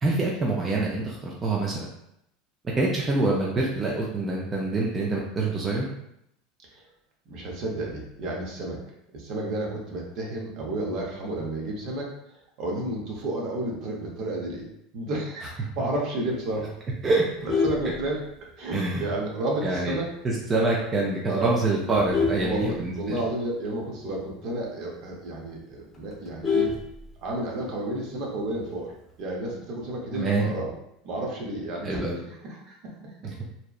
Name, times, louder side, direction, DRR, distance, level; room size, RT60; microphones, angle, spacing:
voice 1, 0.0-1.9 2.8-5.9 17.0-17.2 18.7-19.0 19.6-20.0 20.2-23.2 30.1-30.5 31.8-32.2 33.2-33.3, right 2 dB, 25° right, -3 dB, 0.4 m, -25 dB
voice 2, 7.3-8.8 9.1-14.7 14.9-16.7 17.4-18.2 18.6-20.1 21.3-21.6 22.4-26.7 27.2-28.9 29.2-30.7 31.0-32.0 32.3-32.9, right 1 dB, 55° right, -1 dB, 0.7 m, -31 dB
Vehicle horn car horn honking, 17.2-18.7 19.2-19.4 19.7-19.8 20.2-20.3 20.6-21.0 21.5-23.4 23.7-23.8 24.1-24.2 24.6-24.7 25.1-25.2 25.4-27.5 28.7-29.1, left 4 dB, 15° left, 0.7 m, -28 dB
2.7 x 2.1 x 2.3 m, 0.77 s
supercardioid pair, 115°, 0 cm